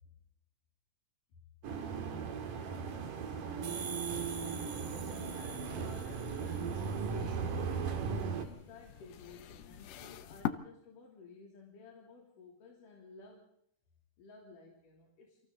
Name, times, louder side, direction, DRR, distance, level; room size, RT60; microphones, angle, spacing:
sound 1, 1.6-8.5, right 6 dB, 80° right, 3.7 m, -37 dB
sound 2, 3.6-7.2, right 5 dB, 55° right, 3.5 m, -46 dB
sound 3, 4.7-10.5, left 12 dB, 65° left, 1.9 m, -45 dB
voice 1, 4.8-13.5 14.2-15.4, left 4 dB, 80° left, -1 dB, 4.7 m, -54 dB
28.0 x 25.5 x 4.0 m, 0.72 s
omnidirectional pair, 3.7 m